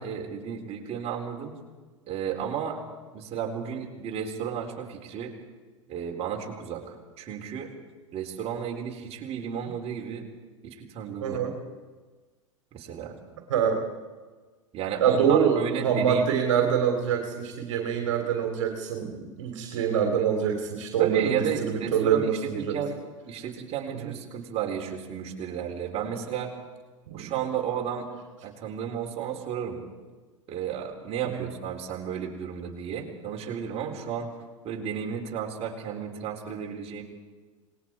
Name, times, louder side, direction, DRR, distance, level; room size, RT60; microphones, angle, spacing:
voice 1, 0.0-1.6 2.1-5.3 5.9-7.7 8.1-10.2 10.6-11.4 12.7-13.2 14.7-16.2 21.0-22.3 22.5-23.0 23.2-26.5 27.1-28.1 28.4-29.8 30.5-34.3 34.6-37.0, right 8 dB, 35° right, 0 dB, 4.1 m, -33 dB
voice 2, 11.2-11.5 13.5-13.8 15.0-22.8 24.0-24.1 27.1-27.3 31.2-31.5, right 7 dB, 65° right, 3 dB, 3.1 m, -25 dB
28.0 x 20.0 x 4.8 m, 1.4 s
figure-of-eight pair, 90°, 17 cm